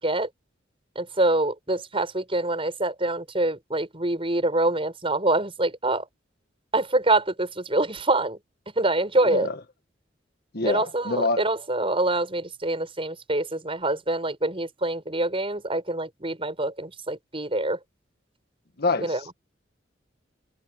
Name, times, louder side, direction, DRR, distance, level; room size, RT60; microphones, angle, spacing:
voice 1, 0.9-6.0 6.7-8.4 8.8-9.5 10.6-17.8 19.0-19.2, right 2 dB, 30° right, 6.7 m, -25 dB
voice 2, 9.2-9.6 10.5-11.4 18.8-19.3, left 3 dB, 55° left, 1.7 m, -26 dB
head